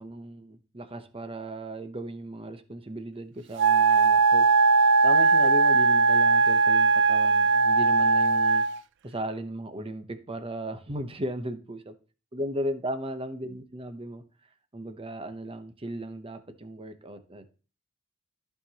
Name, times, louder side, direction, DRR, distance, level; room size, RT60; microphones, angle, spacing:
voice 1, 0.0-4.5 5.0-8.6 9.0-11.9 12.3-14.2 14.7-17.5, right 1 dB, 25° right, 9 dB, 0.8 m, -36 dB
Wind instrument woodwind instrument, 3.6-8.8, right 4 dB, 60° right, 0.4 m, -20 dB
14.0 x 5.7 x 2.9 m, 0.36 s
head